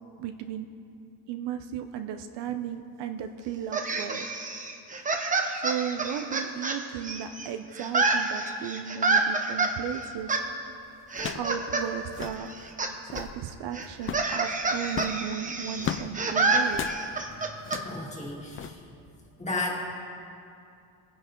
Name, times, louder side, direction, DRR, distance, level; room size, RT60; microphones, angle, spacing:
voice 1, 0.2-0.7 1.3-4.3 5.5-10.4 11.3-12.5 13.0-16.8, right 9 dB, 65° right, 7 dB, 0.8 m, -35 dB
sound 1, 3.7-7.5 7.8-9.7 10.3-10.4 11.1-11.9 12.1-12.9 13.2-13.3 13.7-17.8, right 3 dB, 15° right, 0.9 m, -28 dB
sound 2, 10.2-10.4 11.1-11.6 11.8-11.9 12.1-12.4 12.9-13.4 14.0-14.3 14.9-16.1 16.7-17.0 17.6-18.0 18.5-18.7, left 9 dB, 30° left, 0.4 m, -35 dB
voice 2, 17.8-18.7 19.4-19.9, left 2 dB, 15° left, -2 dB, 2.2 m, -33 dB
20.0 x 10.0 x 3.8 m, 2.6 s
cardioid pair, 130°, 45 cm